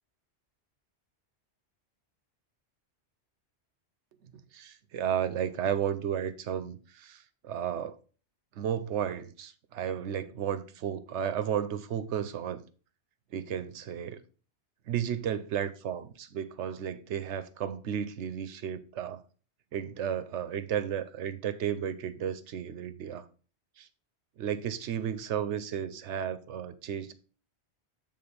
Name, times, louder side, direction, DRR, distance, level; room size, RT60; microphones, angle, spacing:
voice 1, 4.2-8.0 8.5-12.6 13.3-14.2 14.9-19.2 19.7-23.3 23.8-23.9 24.4-27.1, right 9 dB, 90° right, 1.0 m, -33 dB
6.8 x 3.7 x 5.4 m
omnidirectional pair, 1.2 m